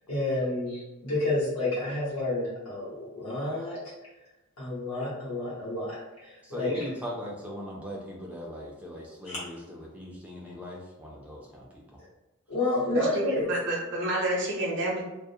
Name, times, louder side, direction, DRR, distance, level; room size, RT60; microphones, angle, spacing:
voice 1, 0.1-3.8 4.6-6.8 9.2-9.4 12.5-13.4, left 2 dB, 70° left, -9 dB, 0.9 m, -30 dB
voice 2, 6.4-11.8, equal, 5° right, -3 dB, 0.4 m, -40 dB
voice 3, 12.9-15.0, right 1 dB, 55° right, -2 dB, 0.6 m, -29 dB
2.4 x 2.0 x 2.7 m, 1.0 s
head